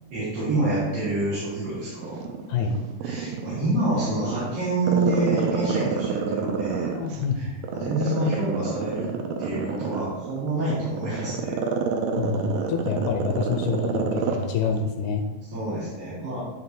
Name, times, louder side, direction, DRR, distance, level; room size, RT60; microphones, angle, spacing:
voice 1, 0.1-2.2 3.0-6.9 7.3-9.1 9.4-11.6 15.5-16.4, right 2 dB, 65° right, -13 dB, 4.3 m, -27 dB
Growling, 2.0-3.8 4.2-7.2 7.6-14.5 14.8-14.9, right 6 dB, 80° right, 2.1 m, -27 dB
voice 2, 6.9-7.5 12.2-15.2, left 5 dB, 75° left, 2 dB, 2.0 m, -27 dB
12.5 x 4.5 x 2.7 m, 1.3 s
omnidirectional pair, 4.5 m